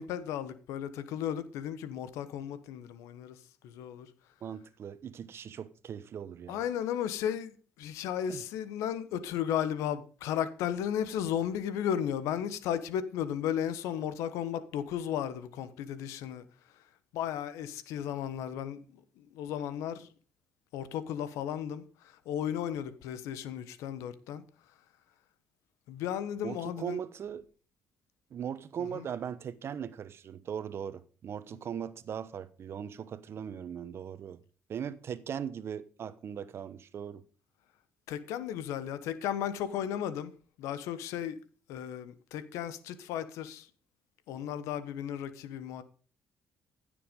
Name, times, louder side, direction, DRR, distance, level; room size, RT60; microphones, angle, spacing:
voice 1, 0.0-4.1 6.5-16.5 17.1-20.1 20.7-24.4 25.9-27.0 28.8-29.1 38.1-40.3 40.6-41.4 41.7-43.7 44.3-45.8, left 9 dB, 90° left, 1.2 m, -35 dB
voice 2, 4.4-6.6 8.3-8.4 26.4-27.5 28.3-34.4 34.7-37.2, right 8 dB, 55° right, 1.1 m, -39 dB
15.5 x 6.8 x 5.3 m
cardioid pair, 85°, 5 cm